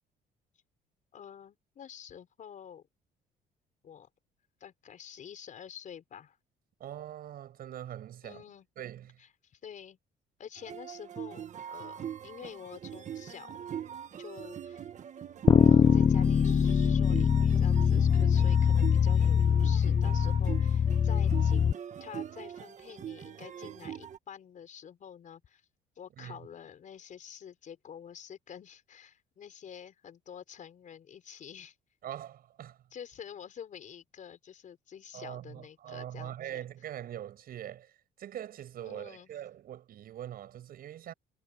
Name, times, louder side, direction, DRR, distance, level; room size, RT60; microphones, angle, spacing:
voice 1, 1.1-2.8 3.8-4.1 4.6-6.4 8.2-8.7 9.2-10.0 10.4-13.5 14.2-14.9 15.7-25.6 25.9-31.7 32.9-36.4 38.9-39.3, left 8 dB, 50° left, 5.1 m, -48 dB
voice 2, 6.8-8.4 8.8-9.2 26.2-26.4 32.0-32.8 35.1-37.9 38.2-41.1, right 11 dB, 60° right, 7.5 m, -42 dB
sound 1, 10.6-24.2, right 9 dB, 45° right, 1.6 m, -42 dB
sound 2, 15.5-21.7, left 7 dB, 30° left, 0.7 m, -23 dB
cardioid pair, 110°, 17 cm